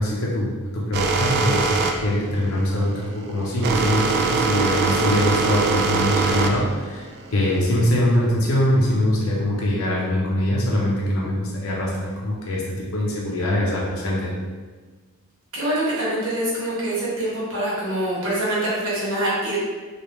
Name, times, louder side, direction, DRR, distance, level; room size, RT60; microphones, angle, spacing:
voice 1, 0.0-7.0 7.3-14.3, left 1 dB, 70° left, -4 dB, 0.5 m, -23 dB
sound 1, 0.9-7.8, right 4 dB, 50° right, 0.3 m, -22 dB
voice 2, 15.5-19.6, right 1 dB, 65° right, -7 dB, 1.2 m, -24 dB
3.2 x 2.3 x 2.9 m, 1.4 s
head